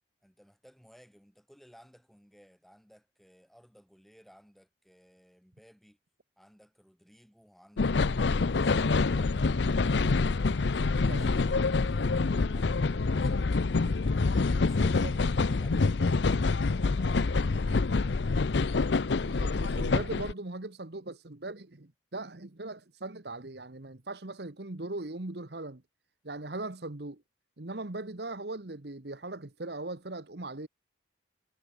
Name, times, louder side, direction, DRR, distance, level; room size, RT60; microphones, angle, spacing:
voice 1, 0.2-6.0 6.4-10.2 10.6-13.8 14.4-16.3 16.7-18.2, equal, ahead, 4.9 m, -59 dB
sound 1, 7.8-20.3, left 3 dB, 65° left, 0.6 m, -26 dB
voice 2, 14.8-15.1 19.2-25.8 26.2-27.2 27.6-30.7, right 2 dB, 55° right, 1.3 m, -39 dB
head